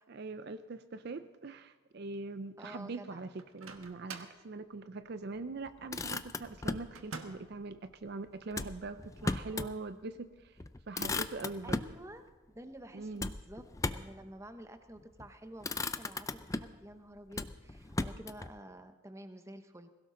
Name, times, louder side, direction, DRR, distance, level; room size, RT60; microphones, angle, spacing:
voice 1, 0.1-11.8 12.9-13.3, right 3 dB, 50° right, 11 dB, 0.5 m, -42 dB
voice 2, 2.6-3.2 9.5-9.7 11.6-12.2 12.5-19.9, right 1 dB, 15° right, 8 dB, 0.8 m, -50 dB
Microwave oven, 3.4-4.4 6.9-7.6, right 4 dB, 80° right, 1.4 m, -46 dB
Motor vehicle (road), 5.7-6.9 8.5-9.8 10.2-10.3 10.6-12.0 13.2-14.2 15.0-15.3 15.6-16.8 17.3-18.5, left 3 dB, 15° left, 0.4 m, -37 dB
22.0 x 16.5 x 3.8 m, 1.3 s
head